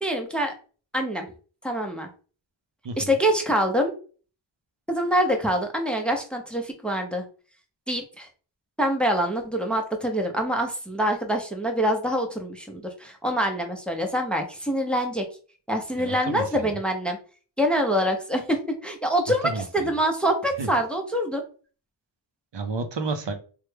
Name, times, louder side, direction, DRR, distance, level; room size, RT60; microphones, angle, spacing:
voice 1, 0.0-0.5 0.9-1.3 1.6-2.1 3.0-3.9 4.9-7.2 7.9-8.3 8.8-15.2 15.7-17.2 17.6-21.4, equal, ahead, 4 dB, 0.6 m, -25 dB
voice 2, 16.0-16.7 19.4-19.6 20.6-20.7 22.5-23.3, right 3 dB, 65° right, 6 dB, 0.6 m, -30 dB
3.2 x 2.2 x 3.3 m, 0.39 s
wide cardioid pair, 45°, 47 cm